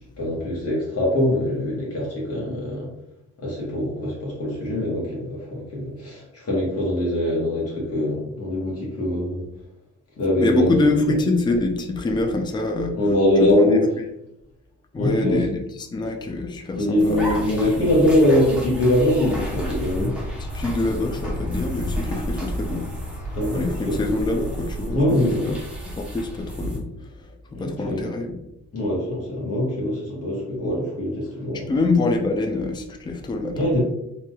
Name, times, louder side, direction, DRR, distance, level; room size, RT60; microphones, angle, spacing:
voice 1, 0.2-2.9 3.4-9.4 10.2-10.8 12.9-13.8 15.0-15.4 16.8-20.2 23.3-24.0 24.9-25.5 27.5-28.0 28.7-31.7 33.5-33.8, left 1 dB, 55° left, -5 dB, 1.1 m, -23 dB
voice 2, 10.4-13.0 13.4-13.7 14.9-18.0 20.5-22.9 23.5-25.6 25.9-28.4 31.7-33.7, left 2 dB, 15° left, 3 dB, 0.4 m, -25 dB
sound 1, 17.0-26.8, equal, 5° right, 1.0 m, -31 dB
3.2 x 2.6 x 2.2 m, 0.87 s
cardioid pair, 90°, 30 cm